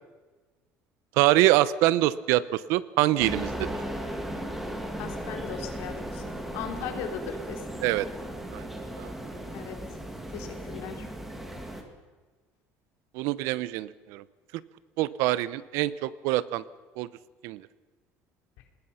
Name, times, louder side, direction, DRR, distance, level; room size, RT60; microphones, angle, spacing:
voice 1, 1.2-3.7 7.8-8.1 8.5-8.6 9.0-9.1 13.1-14.2 15.0-16.6 17.0-17.1 17.4-17.6, right 16 dB, 70° right, 17 dB, 0.8 m, -24 dB
sound 1, 3.2-11.8, right 1 dB, 5° right, 2.2 m, -36 dB
voice 2, 5.0-7.8 9.5-9.8 10.3-11.1, left 8 dB, 70° left, 5 dB, 3.2 m, -38 dB
26.5 x 20.0 x 5.8 m, 1.3 s
cardioid pair, 180°, 5 cm